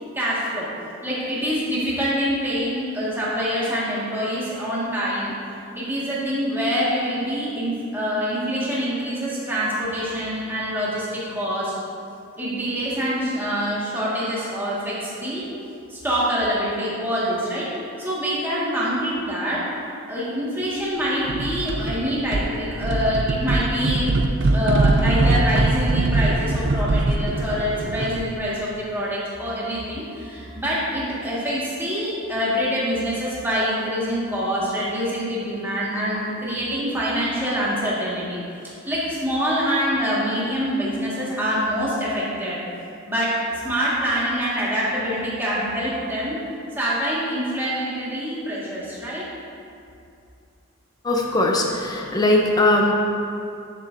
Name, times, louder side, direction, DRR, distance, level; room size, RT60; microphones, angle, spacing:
voice 1, 0.1-0.7 1.0-5.3 5.8-11.7 12.4-15.5 15.9-17.7 18.0-19.7 20.1-24.1 24.5-38.4 38.9-42.6 43.0-43.4 43.6-46.4 46.8-49.3, equal, 10° right, -8 dB, 1.7 m, -25 dB
sound 1, 21.3-22.0 22.3-28.3, right 2 dB, 55° right, 0.5 m, -22 dB
voice 2, 51.0-52.9, left 2 dB, 20° left, 0 dB, 0.7 m, -19 dB
10.5 x 6.9 x 2.6 m, 2.5 s
head